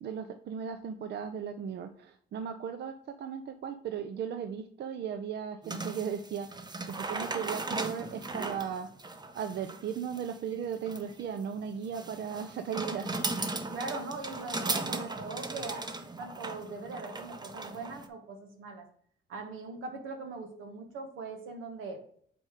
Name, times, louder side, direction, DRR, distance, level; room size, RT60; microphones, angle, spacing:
voice 1, 0.0-8.9 9.3-13.1, right 7 dB, 60° right, 10 dB, 0.5 m, -37 dB
sound 1, 5.6-18.1, right 2 dB, 20° right, 0.7 m, -37 dB
voice 2, 13.7-15.8 16.2-18.8 19.3-22.0, right 3 dB, 90° right, 6 dB, 1.3 m, -41 dB
4.9 x 4.3 x 4.8 m, 0.62 s
cardioid pair, 90°, 20 cm